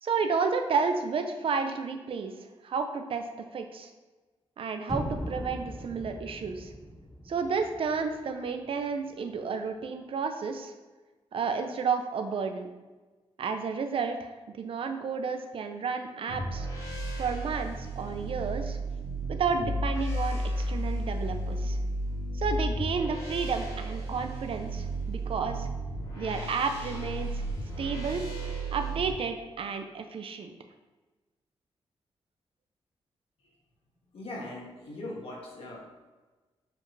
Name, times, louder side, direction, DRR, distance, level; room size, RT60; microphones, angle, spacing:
voice 1, 0.0-3.2 3.5-3.9 4.6-6.7 7.3-10.7 11.3-12.7 13.4-16.7 17.2-18.8 19.3-21.8 22.3-25.7 26.2-27.5 27.8-28.2 28.7-30.5, right 5 dB, 60° right, 6 dB, 0.7 m, -31 dB
sound 1, 4.9-8.8, equal, 5° left, 0.6 m, -39 dB
sound 2, 16.3-29.1, right 1 dB, 35° left, 2.1 m, -33 dB
voice 2, 34.1-35.8, left 1 dB, 70° left, -3 dB, 1.9 m, -40 dB
7.3 x 5.0 x 3.3 m, 1.2 s
wide cardioid pair, 125°, 10 cm